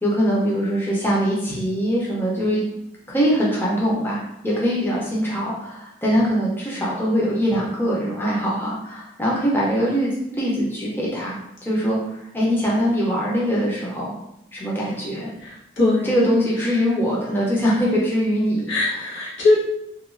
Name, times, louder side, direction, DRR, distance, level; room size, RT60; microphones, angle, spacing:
voice 1, 0.0-2.6 3.1-14.1 14.5-15.3 16.0-19.0, equal, 10° left, -5 dB, 0.5 m, -22 dB
voice 2, 15.4-16.2 18.7-19.6, left 2 dB, 90° left, -7 dB, 1.0 m, -20 dB
2.9 x 2.2 x 2.5 m, 0.81 s
head